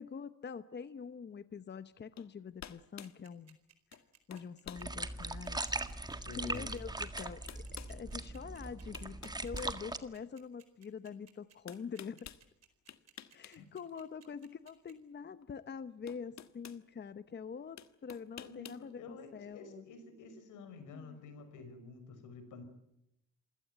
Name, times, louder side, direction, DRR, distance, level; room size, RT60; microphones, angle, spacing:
voice 1, 0.0-3.6 4.3-5.6 6.3-12.3 13.3-19.8 20.9-21.2, left 6 dB, 35° left, 13 dB, 0.9 m, -45 dB
sound 1, 2.2-2.3 2.6-3.2 3.9-4.1 4.3-4.9 5.5-5.6 6.7-6.8 7.2-8.0 8.6-10.3 11.7-12.4 12.9-13.6 13.9-14.0 15.4-15.5 16.1-16.8 17.8-18.8, left 10 dB, 65° left, 1.5 m, -50 dB
sound 2, 3.0-14.9, right 9 dB, 60° right, 4.5 m, -62 dB
sound 3, 4.8-10.0, right 2 dB, 15° right, 1.7 m, -40 dB
voice 2, 6.1-6.8 13.5-14.0 18.4-22.6, left 4 dB, 85° left, 9 dB, 5.6 m, -50 dB
27.0 x 17.0 x 9.2 m, 0.83 s
cardioid pair, 90°, 30 cm